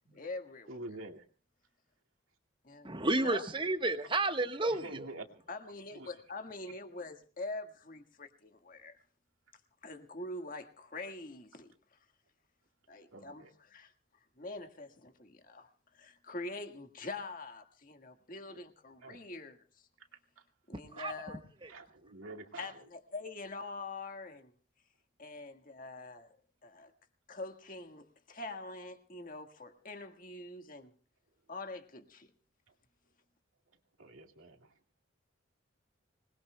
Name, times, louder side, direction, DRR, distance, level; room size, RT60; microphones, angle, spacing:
voice 1, 0.1-0.8 2.6-3.0 3.2-3.4 5.5-9.0 9.8-12.0 12.9-13.9 14.4-19.9 20.7-21.4 22.6-24.5 25.2-26.4 26.6-26.9 27.3-30.9 31.5-32.3, left 2 dB, 40° left, 1.7 m, -44 dB
voice 2, 0.7-1.3 4.6-5.5 5.9-6.1 13.1-13.5 18.5-18.6 19.0-19.2 20.0-20.4 21.0-21.1 21.7-22.9 34.0-34.7, right 2 dB, 80° right, 2.2 m, -48 dB
voice 3, 2.8-5.1 20.9-21.4 21.6-21.7, right 2 dB, 25° right, 1.2 m, -32 dB
26.0 x 20.5 x 2.2 m
head